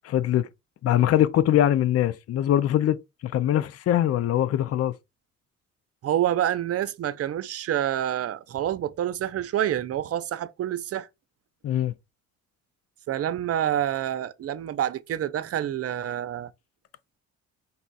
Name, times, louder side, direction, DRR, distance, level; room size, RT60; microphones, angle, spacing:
voice 1, 0.0-0.5 0.8-4.9 11.6-11.9, left 11 dB, 55° left, 0.5 m, -22 dB
voice 2, 6.0-11.1 13.1-16.5, right 11 dB, 50° right, 0.6 m, -27 dB
5.3 x 2.4 x 4.0 m
cardioid pair, 90°, 30 cm